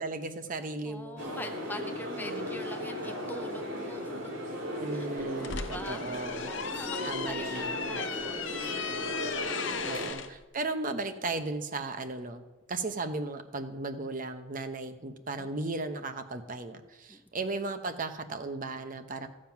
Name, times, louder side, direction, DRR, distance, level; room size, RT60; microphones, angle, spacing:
voice 1, 0.0-1.2 2.1-2.5 4.8-6.5 7.0-8.0 9.8-12.4 12.7-19.3, right 3 dB, 40° right, 8 dB, 0.8 m, -36 dB
voice 2, 0.8-4.2 4.9-5.1 5.4-8.8 9.7-10.0 15.4-15.8 17.1-17.2, left 1 dB, 10° left, 7 dB, 0.5 m, -44 dB
sound 1, 1.2-10.1, equal, 65° right, 3.0 m, -37 dB
sound 2, 5.2-10.3, left 6 dB, 65° left, 0.8 m, -36 dB
14.5 x 7.5 x 5.9 m, 1.1 s
head